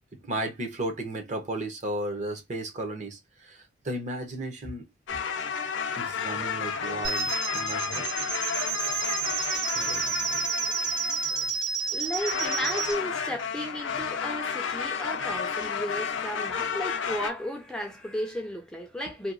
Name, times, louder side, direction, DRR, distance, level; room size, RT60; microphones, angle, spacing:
voice 1, 0.1-4.9 6.0-8.1 9.7-10.1, right 1 dB, 40° right, 0.7 m, -34 dB
sound 1, 5.1-11.6 12.1-17.3, left 6 dB, 75° left, 0.5 m, -32 dB
sound 2, 7.0-13.0, right 5 dB, 75° right, 1.5 m, -30 dB
voice 2, 11.9-19.3, equal, 5° left, 0.4 m, -34 dB
2.8 x 2.3 x 2.4 m
head